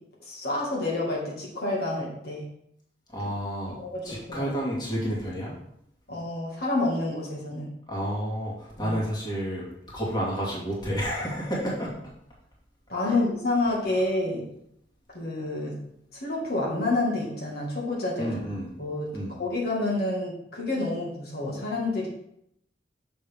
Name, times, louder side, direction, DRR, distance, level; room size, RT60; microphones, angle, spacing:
voice 1, 0.2-2.5 3.7-4.5 6.1-7.7 8.8-9.0 12.9-14.4 15.1-15.8 16.1-18.3 18.8-19.1 19.4-22.1, left 2 dB, 60° left, -4 dB, 1.8 m, -28 dB
voice 2, 3.1-3.8 4.0-5.6 7.9-9.7 9.9-11.9 13.0-13.2 18.2-18.7 19.1-19.4, equal, 25° left, -5 dB, 2.2 m, -30 dB
6.9 x 6.4 x 3.5 m, 0.74 s
head